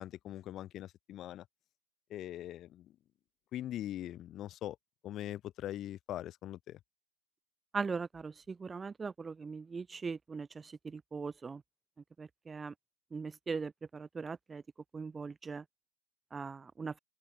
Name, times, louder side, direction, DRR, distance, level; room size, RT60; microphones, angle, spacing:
voice 1, 0.0-1.5 2.1-2.9 3.5-4.8 5.0-6.8, left 13 dB, 30° left, 5.2 m, -42 dB
voice 2, 7.7-11.6 12.2-12.7 13.1-14.6 14.9-15.6 16.3-16.9, right 5 dB, 15° right, 2.6 m, -40 dB
open air
figure-of-eight pair, 90°, 0 cm